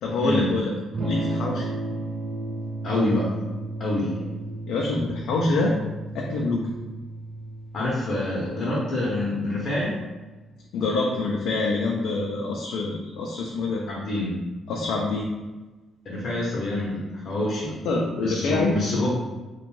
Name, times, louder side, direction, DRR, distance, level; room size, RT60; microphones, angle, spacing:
voice 1, 0.0-0.7 1.0-1.7 4.7-5.7 6.1-6.7 10.7-13.8 14.7-15.3 17.2-17.4 17.8-18.7, left 3 dB, 85° left, -1 dB, 0.3 m, -25 dB
Electric guitar / Strum, 0.9-10.7, right 2 dB, 40° right, 0.3 m, -34 dB
voice 2, 2.8-3.3 3.8-4.2 7.7-10.0 13.9-14.4 16.0-17.8 18.2-19.1, left 1 dB, 55° left, -6 dB, 0.7 m, -26 dB
2.5 x 2.2 x 3.1 m, 1.2 s
cardioid pair, 110°, 0 cm